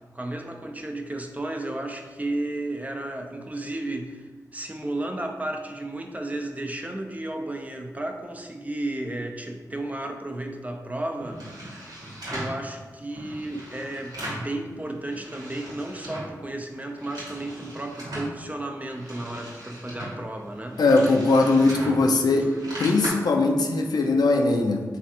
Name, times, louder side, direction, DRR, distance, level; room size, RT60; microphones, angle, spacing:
voice 1, 0.1-4.2 4.5-11.4 12.3-20.8, right 1 dB, 20° right, 3 dB, 0.4 m, -33 dB
sound 1, 11.2-12.6 13.1-14.5 14.9-16.4 16.7-18.3 18.8-23.1, right 1 dB, 75° right, 1.1 m, -38 dB
voice 2, 20.8-22.5 22.8-24.8, left 3 dB, 80° left, 2 dB, 0.3 m, -20 dB
3.2 x 2.4 x 2.8 m, 1.4 s
cardioid pair, 40°, 7 cm